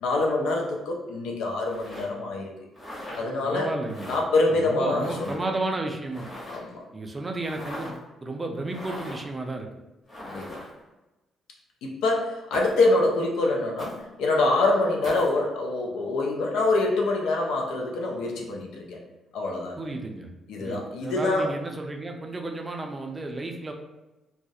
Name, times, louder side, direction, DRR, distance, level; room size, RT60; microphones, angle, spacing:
voice 1, 0.0-2.5 3.1-3.7 4.1-5.4 6.5-6.8 10.2-10.6 11.8-19.0 19.3-19.8 20.5-21.5, left 2 dB, 85° left, 0 dB, 0.4 m, -25 dB
sound 1, 1.7-2.0 2.7-3.2 3.8-4.2 4.9-5.4 6.1-6.7 7.4-8.0 8.7-9.3 10.1-10.8 12.5-12.9 13.8-14.0 15.0-15.3, left 1 dB, 25° left, 1.0 m, -38 dB
voice 2, 3.4-4.2 4.6-6.3 6.9-9.7 19.8-20.3 20.6-23.7, right 2 dB, 25° right, 2 dB, 0.4 m, -32 dB
2.3 x 2.0 x 2.6 m, 1.0 s
cardioid pair, 90°, 0 cm